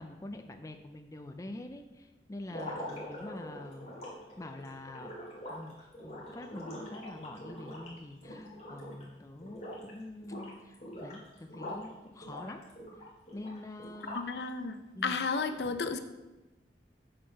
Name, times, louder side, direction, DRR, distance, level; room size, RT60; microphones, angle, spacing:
voice 1, 0.0-4.0 4.4-5.1 5.5-5.8 6.0-12.6 13.3-14.3 14.9-15.2 15.6-15.8, left 1 dB, 20° left, 6 dB, 0.4 m, -45 dB
sound 1, 2.4-9.1 9.4-9.9 10.2-11.9 12.2-14.4, left 1 dB, 35° left, 2.2 m, -44 dB
voice 2, 14.1-14.8 15.0-16.0, left 4 dB, 70° left, 9 dB, 0.6 m, -32 dB
7.5 x 4.6 x 5.6 m, 1.1 s
head